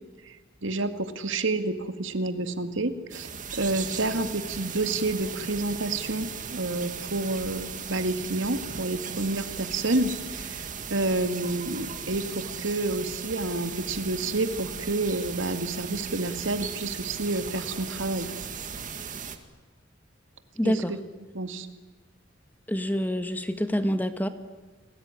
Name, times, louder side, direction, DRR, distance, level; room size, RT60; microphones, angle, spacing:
voice 1, 0.6-3.3 3.6-18.3 20.6-20.7 21.3-21.7, right 2 dB, 75° right, 9 dB, 2.1 m, -29 dB
sound 1, 3.1-19.4, right 6 dB, 45° right, 2.1 m, -37 dB
voice 2, 20.6-21.0 22.7-24.3, equal, 10° left, 9 dB, 1.5 m, -27 dB
30.0 x 20.0 x 9.8 m, 1.2 s
head